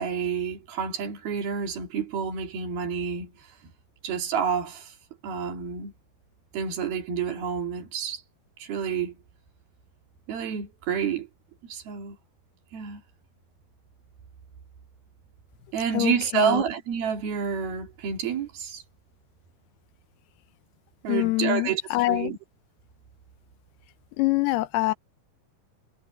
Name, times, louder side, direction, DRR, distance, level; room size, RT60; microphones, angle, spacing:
voice 1, 0.0-3.3 4.0-4.9 5.2-5.9 6.5-8.2 8.6-9.2 10.3-11.3 11.7-12.2 12.7-13.0 15.7-18.8 21.0-21.8 22.1-22.4, right 7 dB, 75° right, 4.5 m, -29 dB
voice 2, 15.9-16.6 21.1-22.3 24.2-24.9, left 20 dB, 90° left, 2.8 m, -25 dB
omnidirectional pair, 4.5 m